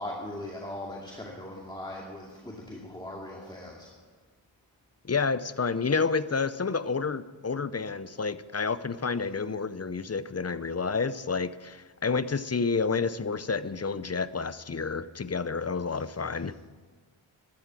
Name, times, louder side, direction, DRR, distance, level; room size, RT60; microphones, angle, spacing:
voice 1, 0.0-3.9, left 1 dB, 10° left, -2 dB, 2.3 m, -39 dB
voice 2, 5.0-16.6, left 4 dB, 30° left, 15 dB, 0.6 m, -29 dB
13.0 x 12.5 x 7.5 m, 1.4 s
wide cardioid pair, 75°, 48 cm